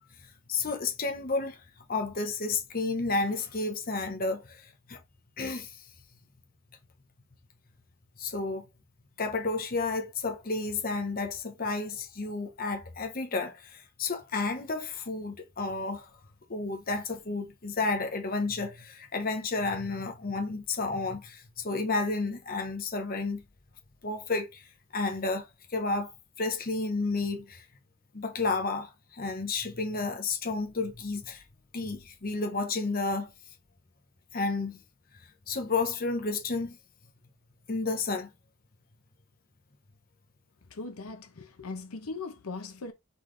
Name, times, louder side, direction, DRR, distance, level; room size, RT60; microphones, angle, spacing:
voice 1, 0.5-1.6 1.9-4.4 4.9-5.0 5.4-5.7 8.2-8.6 9.2-16.1 16.5-23.4 24.0-24.6 24.9-25.5 25.7-27.6 28.1-31.4 31.7-33.3 34.3-34.8 35.5-36.8 37.7-38.3, left 3 dB, 45° left, 0.9 m, -31 dB
voice 2, 40.7-42.9, left 3 dB, 90° left, 0.8 m, -39 dB
4.1 x 3.9 x 3.2 m
head